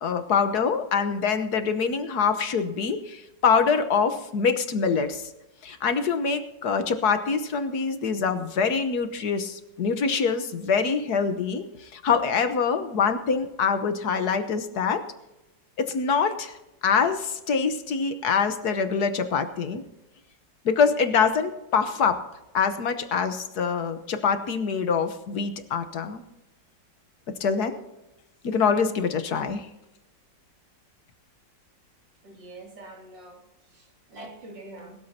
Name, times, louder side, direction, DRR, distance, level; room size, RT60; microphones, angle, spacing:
voice 1, 0.0-5.3 5.6-15.0 15.8-16.6 16.8-19.8 20.6-22.2 22.5-26.2 27.3-27.8 28.4-29.7, left 5 dB, 65° left, 9 dB, 1.5 m, -25 dB
voice 2, 32.2-35.0, right 2 dB, 80° right, 0 dB, 3.6 m, -45 dB
20.5 x 13.0 x 2.8 m, 0.95 s
omnidirectional pair, 1.9 m